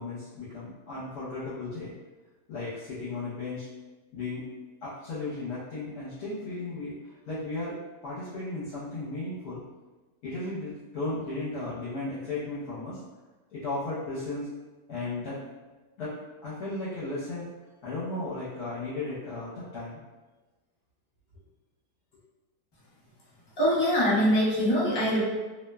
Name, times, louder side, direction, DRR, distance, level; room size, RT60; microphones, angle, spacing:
voice 1, 0.0-1.9 2.5-3.7 4.1-4.4 4.8-6.9 7.3-9.6 10.2-13.0 13.5-14.5 14.9-15.4 16.0-16.1 16.4-17.5 17.8-20.0, left 2 dB, 70° left, -10 dB, 1.2 m, -35 dB
voice 2, 23.6-25.2, equal, 35° left, -9 dB, 0.4 m, -23 dB
2.9 x 2.1 x 2.2 m, 1.2 s
omnidirectional pair, 1.7 m